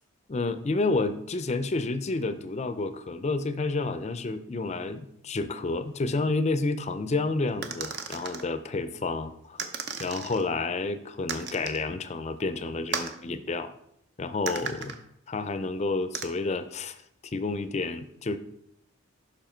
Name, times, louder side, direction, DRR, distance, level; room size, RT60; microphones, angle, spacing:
voice 1, 0.3-9.7 10.0-13.7 14.2-14.9 15.3-17.0 17.2-18.4, left 3 dB, 35° left, 11 dB, 0.5 m, -30 dB
sound 1, 7.6-8.4 9.6-10.4 11.3-11.8 12.9-13.2 14.5-15.0 16.1-16.3, right 6 dB, 55° right, 0.7 m, -35 dB
7.1 x 5.6 x 4.4 m, 0.74 s
head